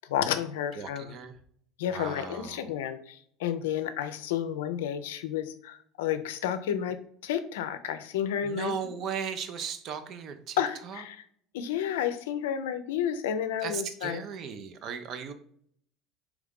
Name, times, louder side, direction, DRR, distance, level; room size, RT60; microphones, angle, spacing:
voice 1, 0.1-1.1 1.8-8.7 10.6-11.2 11.5-14.2, left 9 dB, 85° left, 10 dB, 0.4 m, -31 dB
voice 2, 0.8-1.4 1.9-2.7 8.4-11.0 13.6-15.3, right 7 dB, 55° right, 9 dB, 0.6 m, -37 dB
3.6 x 3.1 x 3.5 m, 0.62 s
hypercardioid pair, 85°, 0 cm